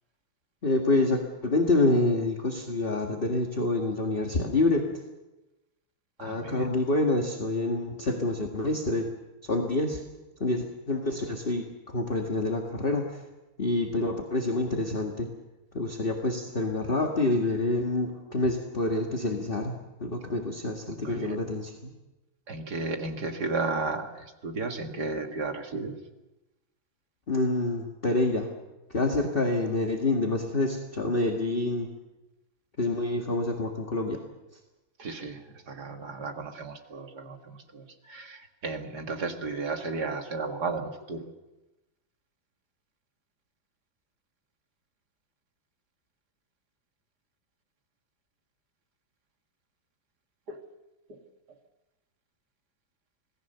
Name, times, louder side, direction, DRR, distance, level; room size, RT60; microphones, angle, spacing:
voice 1, 0.6-4.9 6.2-9.1 9.4-10.0 10.4-13.2 13.6-15.3 15.7-21.7 27.3-28.5 28.9-31.9 32.8-34.2, left 2 dB, 30° left, 1 dB, 1.9 m, -27 dB
voice 2, 6.2-6.7 20.9-21.4 22.5-26.0 35.0-41.3 50.5-50.6 51.1-51.2, right 3 dB, 50° right, 4 dB, 2.5 m, -34 dB
26.5 x 18.5 x 6.9 m, 1.0 s
omnidirectional pair, 2.2 m